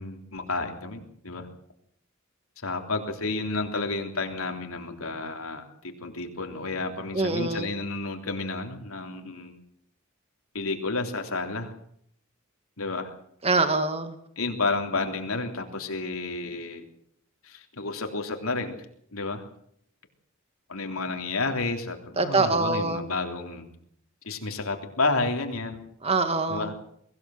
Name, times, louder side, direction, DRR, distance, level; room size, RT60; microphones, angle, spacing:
voice 1, 0.0-1.5 2.6-9.6 10.5-11.7 12.8-13.1 14.4-16.8 17.4-18.7 19.1-19.4 20.7-23.7 24.2-25.8 26.5-26.8, left 3 dB, 90° left, 4 dB, 3.4 m, -31 dB
voice 2, 7.1-7.7 13.4-14.1 22.2-23.1 26.0-26.7, right 3 dB, 30° right, 9 dB, 1.9 m, -24 dB
23.0 x 16.5 x 7.8 m, 0.67 s
head